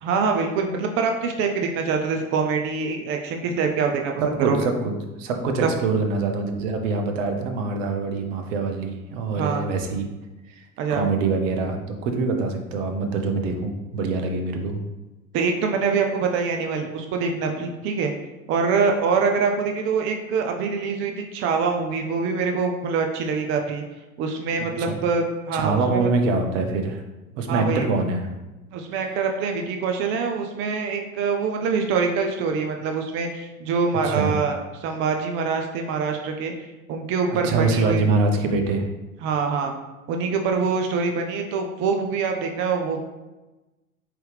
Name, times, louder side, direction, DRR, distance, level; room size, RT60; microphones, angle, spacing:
voice 1, 0.0-4.1 4.5-4.7 5.6-5.7 9.4-9.6 10.8-11.1 15.3-18.1 18.5-23.8 24.2-26.1 27.5-27.8 28.7-38.0 39.2-39.7 40.1-43.0, right 5 dB, 30° right, 3 dB, 0.4 m, -24 dB
voice 2, 4.2-10.1 10.5-14.8 24.6-25.0 25.5-27.0 27.4-28.3 34.0-34.4 37.3-38.9, right 3 dB, 60° right, 4 dB, 0.8 m, -24 dB
4.5 x 3.2 x 3.3 m, 1.1 s
figure-of-eight pair, 80°, 43 cm